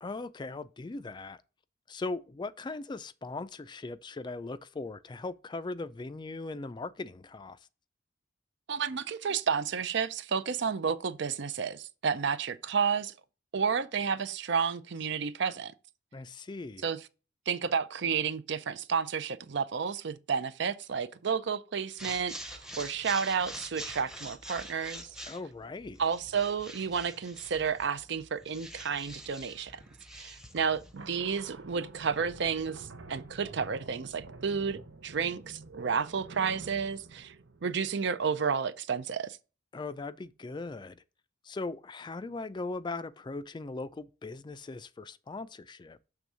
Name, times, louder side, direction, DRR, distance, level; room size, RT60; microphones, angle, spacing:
voice 1, 0.0-1.4 1.9-7.6 16.1-16.9 25.3-26.0 39.7-41.0 41.4-46.0, left 3 dB, 25° left, 0.4 m, -39 dB
voice 2, 8.7-13.1 13.5-15.7 16.8-17.0 17.5-25.1 26.0-29.7 30.1-37.3 37.6-39.4, right 6 dB, 65° right, 0.5 m, -31 dB
sound 1, 22.0-31.0, equal, 5° right, 0.8 m, -45 dB
sound 2, 30.9-38.3, right 3 dB, 85° right, 0.9 m, -48 dB
6.8 x 3.5 x 6.1 m
head